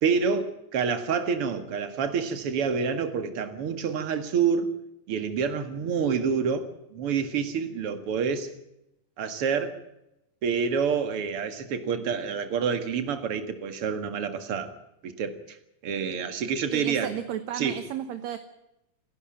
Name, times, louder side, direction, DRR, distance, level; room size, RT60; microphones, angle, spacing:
voice 1, 0.0-4.7 5.1-8.5 9.2-9.8 10.4-14.7 15.0-15.6 15.8-17.2 17.5-17.8, right 6 dB, 45° right, 9 dB, 2.5 m, -28 dB
voice 2, 16.7-18.4, right 10 dB, 65° right, 11 dB, 2.0 m, -33 dB
28.5 x 11.5 x 8.9 m, 0.88 s
omnidirectional pair, 4.0 m